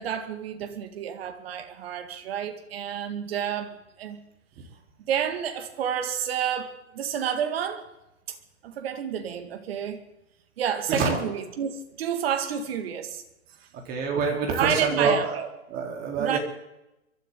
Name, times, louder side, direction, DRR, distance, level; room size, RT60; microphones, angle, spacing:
voice 1, 0.0-4.2 5.1-7.9 8.3-8.4 8.6-10.0 10.6-13.2 13.6-13.7 14.5-15.3 16.2-16.4, right 8 dB, 45° right, 7 dB, 2.0 m, -30 dB
voice 2, 10.9-11.2 13.7-16.4, right 4 dB, 20° right, 0 dB, 3.5 m, -26 dB
24.0 x 13.5 x 3.8 m, 0.91 s
hypercardioid pair, 145°, 42 cm